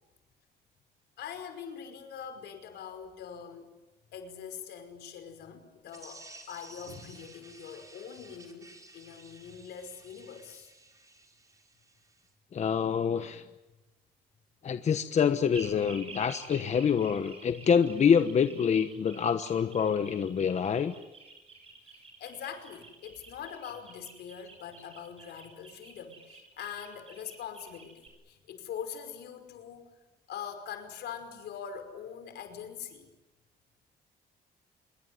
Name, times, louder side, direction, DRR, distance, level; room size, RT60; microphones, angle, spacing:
voice 1, 1.2-3.7 4.1-10.7 21.8-29.9 30.3-33.1, left 8 dB, 80° left, 8 dB, 5.4 m, -43 dB
sound 1, 5.9-12.3, right 2 dB, 20° right, 5.2 m, -54 dB
voice 2, 12.5-13.4 14.6-20.9, left 7 dB, 40° left, 9 dB, 1.2 m, -26 dB
sound 2, 15.5-28.1, right 4 dB, 35° right, 7.9 m, -50 dB
26.5 x 22.5 x 9.7 m, 1.1 s
cardioid pair, 130°, 17 cm